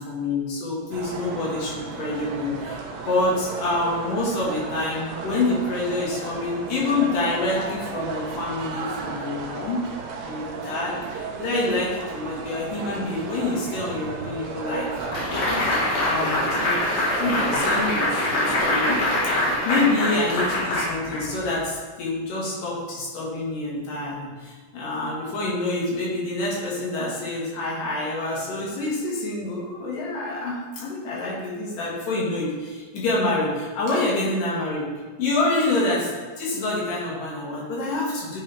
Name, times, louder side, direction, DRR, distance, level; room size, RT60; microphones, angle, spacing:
voice 1, 0.0-9.9 10.3-34.9 35.2-38.4, left 2 dB, 85° left, -6 dB, 3.4 m, -27 dB
sound 1, 0.9-19.6, right 4 dB, 70° right, 1.8 m, -34 dB
sound 2, 15.1-21.6, left 1 dB, 65° left, 3.0 m, -24 dB
9.3 x 3.5 x 4.3 m, 1.4 s
omnidirectional pair, 3.7 m